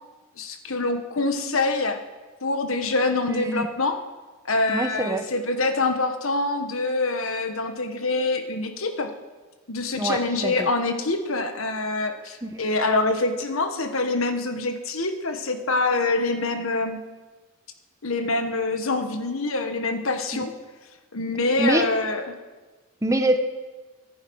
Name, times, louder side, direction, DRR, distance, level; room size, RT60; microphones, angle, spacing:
voice 1, 0.4-2.0 2.4-4.0 4.4-9.1 9.7-17.0 18.0-20.5 21.1-22.2, left 2 dB, 70° left, 7 dB, 1.4 m, -25 dB
voice 2, 3.3-3.7 4.7-5.2 10.0-10.7 12.4-12.5 20.3-20.4 21.6-21.9 23.0-23.4, right 1 dB, 15° right, 7 dB, 1.0 m, -24 dB
25.0 x 10.5 x 4.8 m, 1.3 s
head